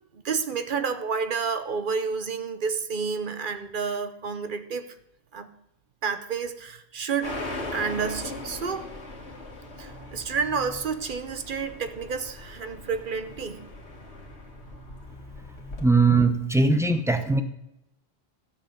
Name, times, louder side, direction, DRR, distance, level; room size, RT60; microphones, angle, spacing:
voice 1, 0.1-5.0 5.3-5.5 6.0-7.3 7.7-8.9 9.8-13.7, right 5 dB, 55° right, 9 dB, 0.8 m, -30 dB
sound 1, 7.2-15.9, left 2 dB, 90° left, 1.9 m, -39 dB
voice 2, 15.8-17.4, right 3 dB, 5° right, 7 dB, 0.6 m, -20 dB
13.0 x 7.3 x 5.2 m, 0.85 s
omnidirectional pair, 1.1 m